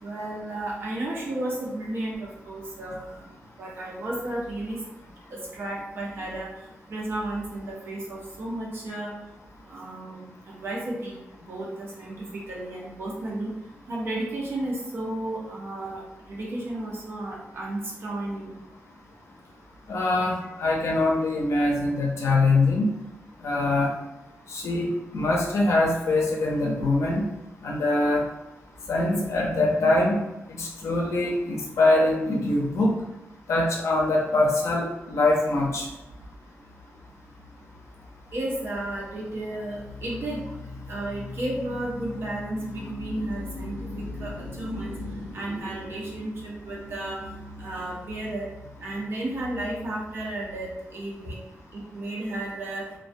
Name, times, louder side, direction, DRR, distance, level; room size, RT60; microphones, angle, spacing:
voice 1, 0.0-3.3 3.6-4.8 5.3-6.5 6.9-9.1 9.7-11.2 11.5-13.5 13.9-18.6 38.3-40.4 40.9-45.0 45.3-47.2 47.6-48.5 48.8-51.4 51.7-52.8, right 1 dB, 50° right, -4 dB, 0.6 m, -33 dB
voice 2, 19.9-22.9 23.4-23.9 24.5-24.9 25.1-27.2 27.6-28.2 28.9-30.2 30.6-32.9 33.5-35.9, left 2 dB, 85° left, -1 dB, 0.5 m, -23 dB
sound 1, 36.7-50.8, left 2 dB, 75° right, 1.1 m, -41 dB
2.3 x 2.2 x 2.5 m, 0.97 s
wide cardioid pair, 170°, 5 cm